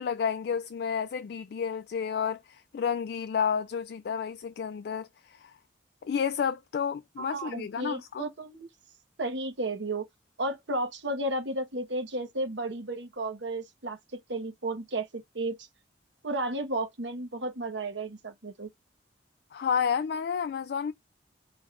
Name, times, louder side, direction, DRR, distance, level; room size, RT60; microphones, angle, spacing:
voice 1, 0.0-5.5 6.0-8.2 19.5-20.9, left 7 dB, 60° left, 0.3 m, -31 dB
voice 2, 7.2-8.7 9.2-10.1 10.4-15.5 16.2-18.7, right 2 dB, 85° right, 1.3 m, -33 dB
3.9 x 2.5 x 3.2 m
head